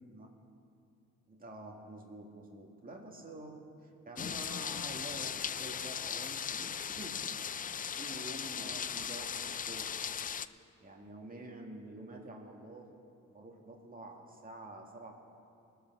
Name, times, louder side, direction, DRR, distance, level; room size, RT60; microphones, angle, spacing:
voice 1, 1.3-7.2 8.0-9.9 10.8-12.9 13.3-15.1, right 2 dB, 30° right, 0 dB, 2.3 m, -48 dB
sound 1, 4.2-10.5, left 7 dB, 30° left, 0.4 m, -38 dB
20.0 x 6.8 x 6.3 m, 2.5 s
cardioid pair, 90°, 30 cm